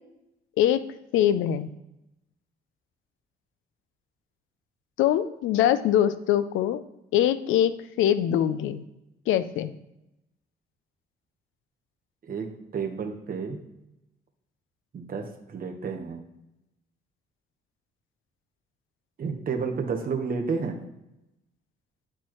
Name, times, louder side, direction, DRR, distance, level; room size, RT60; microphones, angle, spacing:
voice 1, 1.1-1.7 5.0-6.8 7.1-8.8 9.3-9.7, left 11 dB, 85° left, 14 dB, 0.5 m, -23 dB
voice 2, 12.2-13.6 14.9-16.2 19.2-20.8, right 5 dB, 45° right, 4 dB, 1.2 m, -31 dB
10.0 x 4.3 x 3.1 m, 0.91 s
cardioid pair, 90°, 20 cm